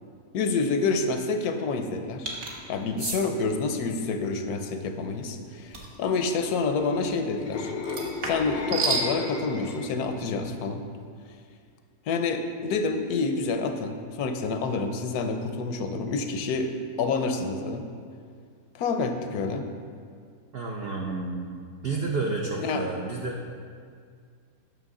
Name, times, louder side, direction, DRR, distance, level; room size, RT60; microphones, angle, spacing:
voice 1, 0.3-2.3 2.7-7.7 8.2-10.8 12.1-17.8 18.7-19.6 22.6-22.9, left 4 dB, 75° left, 6 dB, 1.1 m, -28 dB
sound 1, 2.3-2.5 3.0-3.2 5.7-6.0 7.8-9.1, right 4 dB, 50° right, 1.3 m, -29 dB
sound 2, 6.7-10.1 10.5-10.8, left 4 dB, 60° left, 0.6 m, -34 dB
voice 2, 20.5-21.6 21.8-23.4, right 3 dB, 70° right, 0 dB, 0.5 m, -30 dB
9.0 x 6.0 x 3.7 m, 2.1 s
omnidirectional pair, 1.7 m